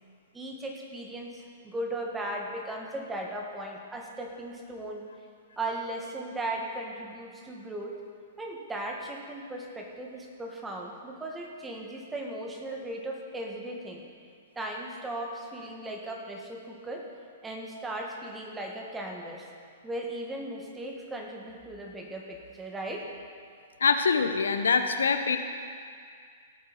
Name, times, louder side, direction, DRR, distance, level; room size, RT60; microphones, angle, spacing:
voice 1, 0.3-5.0 5.6-8.0 8.4-14.0 14.6-17.1 17.4-19.5 19.8-23.1, right 1 dB, 10° right, 1 dB, 1.8 m, -37 dB
voice 2, 23.8-25.4, left 5 dB, 75° left, 8 dB, 0.8 m, -24 dB
17.0 x 8.7 x 4.2 m, 2.1 s
figure-of-eight pair, 115°, 0 cm